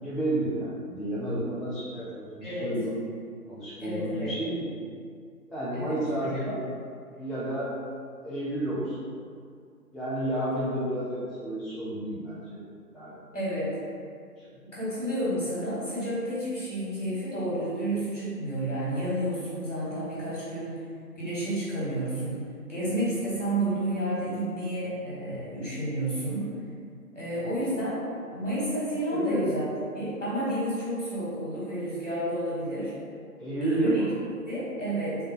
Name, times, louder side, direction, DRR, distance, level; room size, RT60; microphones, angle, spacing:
voice 1, 0.0-2.9 3.5-4.7 5.5-6.6 7.2-7.7 8.2-9.1 9.9-12.6 12.9-13.4 14.4-14.5 29.1-29.4 33.4-34.2, right 1 dB, ahead, -10 dB, 0.4 m, -31 dB
voice 2, 2.4-2.7 3.8-4.3 5.7-6.5 13.3-13.7 14.7-20.8 21.2-22.4 22.7-26.5 27.1-28.0 28.3-29.7 29.9-32.9 33.6-34.0 34.5-35.2, right 1 dB, 50° left, -8 dB, 1.3 m, -30 dB
3.2 x 2.2 x 3.7 m, 2.3 s
figure-of-eight pair, 160°, 48 cm